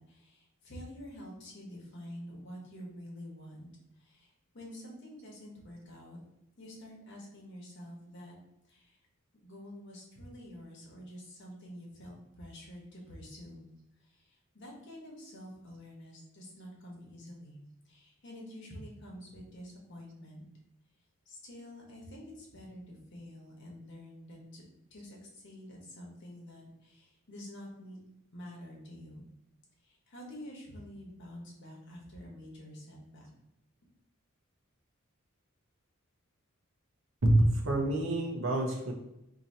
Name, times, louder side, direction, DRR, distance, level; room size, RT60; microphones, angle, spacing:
voice 1, 0.0-3.7 4.0-6.2 6.6-8.4 8.7-9.0 9.4-13.7 14.1-20.4 21.3-24.6 24.9-28.0 28.3-29.2 29.8-33.3, equal, 55° left, -2 dB, 1.0 m, -48 dB
voice 2, 37.2-38.9, right 1 dB, 65° right, 0 dB, 0.8 m, -27 dB
2.7 x 2.6 x 4.2 m, 0.86 s
head